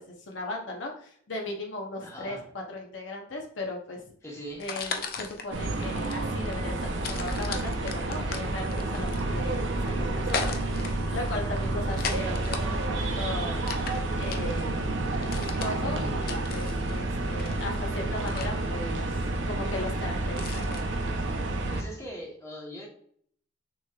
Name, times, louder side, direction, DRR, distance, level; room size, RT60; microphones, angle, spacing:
voice 1, 0.0-4.0 4.6-10.7 11.1-12.8 13.2-13.6 14.2-14.9 15.3-20.8, left 2 dB, 80° left, 1 dB, 0.8 m, -37 dB
voice 2, 2.0-2.5 4.2-4.7 21.7-22.9, equal, 15° left, -2 dB, 1.1 m, -40 dB
sound 1, 4.5-20.8, left 5 dB, 50° left, 0.5 m, -39 dB
sound 2, 5.5-21.8, right 2 dB, 80° right, 0.6 m, -30 dB
6.0 x 3.1 x 2.3 m, 0.62 s
head